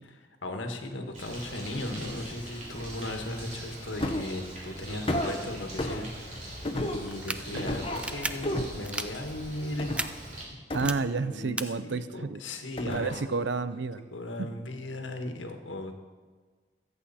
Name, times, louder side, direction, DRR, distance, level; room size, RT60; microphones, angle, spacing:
voice 1, 0.4-10.3 11.2-13.5 14.1-16.0, left 1 dB, 90° left, 5 dB, 1.6 m, -37 dB
Bird, 1.1-10.4, right 1 dB, 40° right, 3.6 m, -42 dB
sound 1, 4.0-4.4 5.1-5.3 5.8-6.0 6.6-7.1 7.6-8.1 8.4-8.8 9.8-10.1 10.7-11.5 12.8-13.3 13.6-13.7, left 1 dB, 30° left, 1.1 m, -32 dB
sound 2, 7.1-7.4 7.9-8.3 8.8-9.1 9.9-10.1 10.7-10.9 11.6-11.7, right 2 dB, 5° right, 0.3 m, -32 dB
voice 2, 10.7-12.4 12.9-14.0 14.4-14.5, right 4 dB, 70° right, 14 dB, 0.6 m, -30 dB
23.0 x 8.2 x 4.3 m, 1.5 s
head